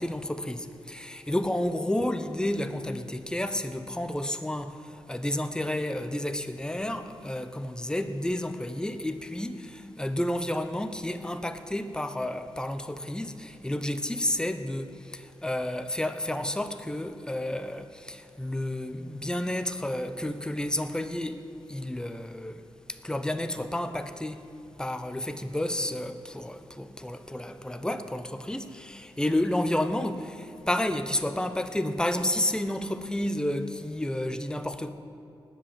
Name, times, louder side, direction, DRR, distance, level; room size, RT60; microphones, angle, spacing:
voice 1, 0.0-21.4 21.7-24.4 24.8-34.9, left 1 dB, 10° left, 0.9 m, -31 dB
19.0 x 7.9 x 7.7 m
cardioid pair, 75°, 9 cm